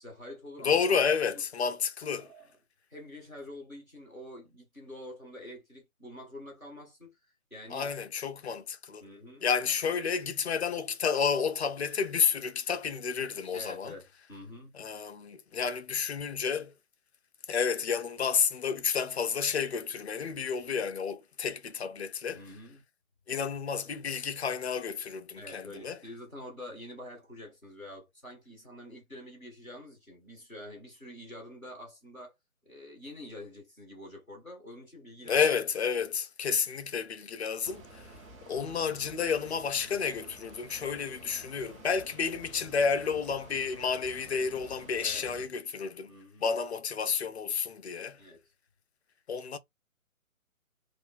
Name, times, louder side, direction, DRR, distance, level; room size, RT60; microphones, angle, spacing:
voice 1, 0.0-0.7 1.3-1.4 2.1-2.5 2.9-7.2 7.5-7.9 9.0-9.5 13.5-14.7 22.3-22.8 25.4-32.3 32.6-35.4 45.0-45.2 46.1-46.5 48.2-48.4, left 1 dB, ahead, 0.5 m, -46 dB
voice 2, 0.6-2.3 7.7-9.0 9.4-13.9 14.7-16.7 17.5-22.4 23.3-26.0 35.3-38.0 38.4-46.1 46.4-48.2 49.3-49.6, left 6 dB, 50° left, 0.6 m, -30 dB
sound 1, 37.6-45.5, right 2 dB, 20° right, 1.0 m, -51 dB
2.7 x 2.5 x 4.1 m
figure-of-eight pair, 140°, 43 cm